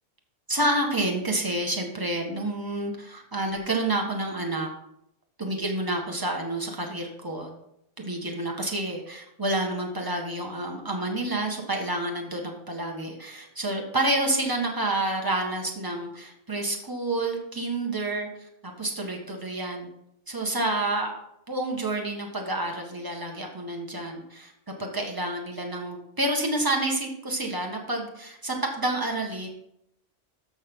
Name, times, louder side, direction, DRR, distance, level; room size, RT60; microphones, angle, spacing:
voice 1, 0.5-4.7 5.4-7.5 8.0-18.3 18.8-19.9 20.3-21.1 21.5-24.5 24.8-29.5, right 2 dB, 15° right, 1 dB, 1.5 m, -29 dB
13.0 x 6.2 x 3.8 m, 0.78 s
omnidirectional pair, 1.3 m